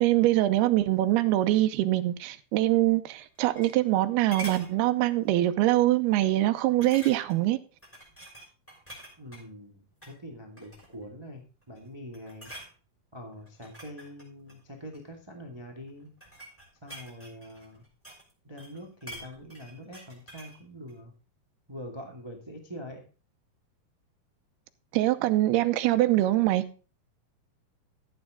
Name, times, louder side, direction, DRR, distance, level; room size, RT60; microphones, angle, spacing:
voice 1, 0.0-7.6 24.9-26.6, right 15 dB, 85° right, 2.8 m, -23 dB
sound 1, 3.1-4.0 4.3-4.7 5.2-5.4 5.8-5.9 6.8-7.4 7.8-9.4 9.9-10.2 10.6-11.1 11.6-11.9 12.1-12.7 13.4-15.1 15.9-18.3 18.6-20.6 20.9-21.0, right 1 dB, 5° left, 5.4 m, -45 dB
voice 2, 9.2-12.5 13.1-16.1 16.8-17.8 18.4-21.1 21.7-23.0, equal, 15° right, 1.0 m, -44 dB
14.0 x 8.7 x 3.8 m
omnidirectional pair, 4.6 m